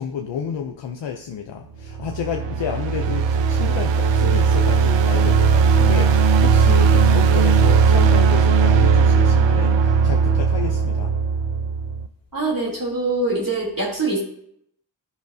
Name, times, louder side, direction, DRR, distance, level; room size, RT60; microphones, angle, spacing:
voice 1, 0.0-11.1, left 7 dB, 85° left, 4 dB, 0.6 m, -31 dB
sound 1, 1.8-12.1, right 5 dB, 80° right, 0.6 m, -17 dB
voice 2, 12.3-14.2, right 2 dB, 50° right, -3 dB, 3.0 m, -23 dB
11.5 x 5.5 x 2.7 m, 0.69 s
cardioid pair, 40°, 43 cm